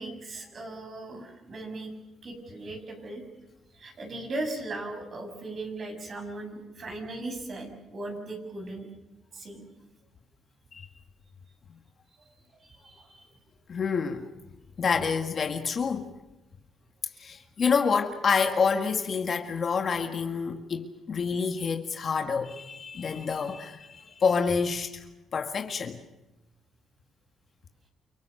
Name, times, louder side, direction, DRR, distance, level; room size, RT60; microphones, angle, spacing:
voice 1, 0.0-1.9 2.2-3.2 3.7-8.9 9.3-9.6 12.2-12.3 12.6-13.4, right 2 dB, 50° right, 7.2 m, -38 dB
voice 2, 13.7-14.3 14.8-16.1 17.2-25.1 25.3-26.0, left 5 dB, 50° left, 1.8 m, -28 dB
29.5 x 24.5 x 6.7 m
cardioid pair, 90°, 0 cm